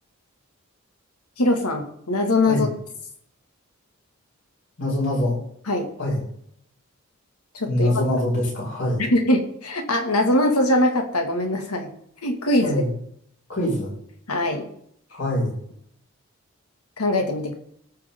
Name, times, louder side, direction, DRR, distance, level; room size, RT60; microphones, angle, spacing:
voice 1, 1.4-2.7 5.7-5.9 7.5-8.2 9.0-11.9 12.2-12.8 14.3-14.7 17.0-17.5, left 1 dB, 90° left, 4 dB, 2.2 m, -22 dB
voice 2, 4.8-5.4 6.0-6.2 7.7-9.0 12.6-12.9 13.5-13.9 15.1-15.5, left 1 dB, 55° left, -4 dB, 5.3 m, -24 dB
19.0 x 6.8 x 3.7 m, 0.69 s
head